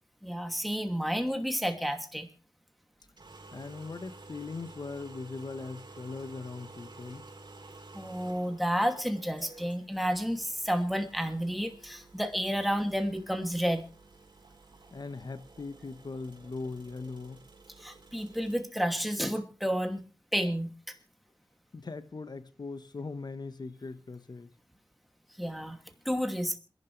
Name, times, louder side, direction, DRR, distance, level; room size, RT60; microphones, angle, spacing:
voice 1, 0.2-2.3 7.9-13.8 17.8-20.0 20.3-20.7 25.4-25.8 26.0-26.5, equal, ahead, 2.6 m, -31 dB
sound 1, 3.0-18.6, right 3 dB, 70° right, 3.6 m, -52 dB
voice 2, 3.5-7.3 14.9-17.4 21.7-24.5, left 3 dB, 60° left, 1.3 m, -40 dB
27.0 x 11.0 x 3.4 m
wide cardioid pair, 55°, 8 cm